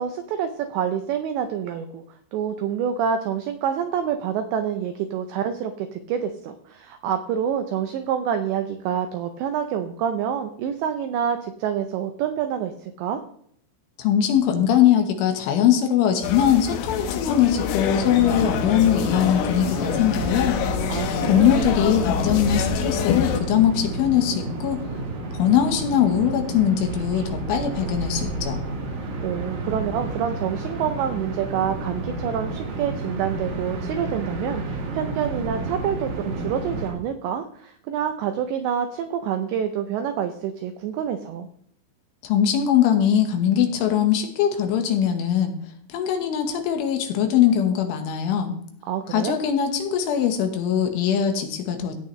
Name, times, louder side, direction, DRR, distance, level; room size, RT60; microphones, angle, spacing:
voice 1, 0.0-2.0 2.3-13.2 20.9-21.5 29.2-41.5 48.9-49.4, right 8 dB, 85° right, 7 dB, 2.5 m, -27 dB
voice 2, 14.0-20.6 21.3-24.9 25.4-28.6 42.2-45.5 45.9-48.5 49.1-51.9, left 9 dB, 75° left, 5 dB, 3.6 m, -21 dB
sound 1, 16.2-23.4, left 8 dB, 90° left, 3.8 m, -27 dB
sound 2, 17.9-36.9, right 2 dB, 65° right, 4.9 m, -31 dB
16.5 x 8.6 x 3.2 m, 0.66 s
omnidirectional pair, 5.9 m